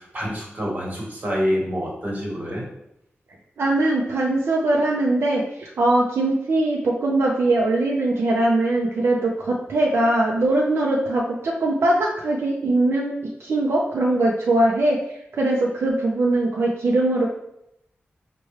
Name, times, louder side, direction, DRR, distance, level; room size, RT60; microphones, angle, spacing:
voice 1, 0.0-2.6, equal, 40° right, -4 dB, 1.1 m, -27 dB
voice 2, 3.6-13.1 13.4-17.3, right 2 dB, 75° right, -2 dB, 0.5 m, -21 dB
4.5 x 2.2 x 3.1 m, 0.80 s
wide cardioid pair, 120°, 4 cm